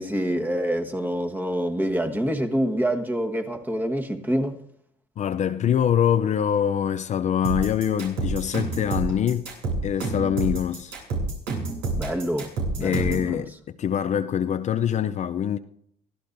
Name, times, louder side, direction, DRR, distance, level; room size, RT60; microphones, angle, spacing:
voice 1, 0.0-4.6 12.0-12.5 12.8-13.4, equal, 10° right, 1.4 m, -26 dB
voice 2, 5.2-9.5 9.8-10.9 12.8-13.5 13.8-15.6, left 9 dB, 45° left, 0.5 m, -24 dB
sound 1, 7.4-13.3, right 3 dB, 90° right, 7.6 m, -28 dB
24.5 x 15.5 x 2.6 m
cardioid pair, 110°, 17 cm